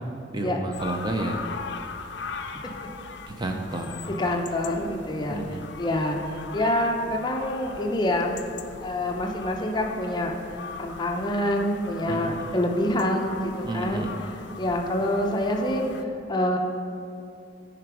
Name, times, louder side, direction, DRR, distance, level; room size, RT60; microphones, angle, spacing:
voice 1, 0.3-1.4 3.4-4.0 5.3-5.6 12.0-12.6 13.6-14.1, right 2 dB, 25° right, 3 dB, 0.5 m, -31 dB
sound 1, 0.7-16.0, left 5 dB, 60° left, 0.4 m, -40 dB
voice 2, 4.2-8.4 8.8-10.3 10.8-14.1 14.6-16.6, left 1 dB, 25° left, 2 dB, 0.6 m, -26 dB
9.5 x 4.9 x 4.7 m, 2.5 s
head